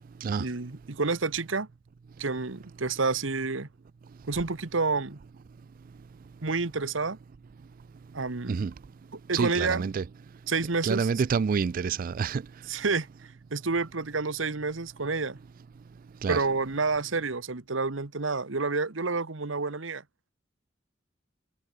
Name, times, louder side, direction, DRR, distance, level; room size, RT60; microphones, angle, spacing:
voice 1, 0.4-1.7 2.2-3.7 4.3-5.2 6.4-7.2 8.1-8.6 9.3-9.9 10.5-11.1 12.7-13.1 13.5-15.4 16.3-20.0, right 4 dB, 90° right, 1.4 m, -29 dB
voice 2, 9.3-10.0 10.8-12.4 16.2-16.4, right 5 dB, 45° right, 0.3 m, -27 dB
head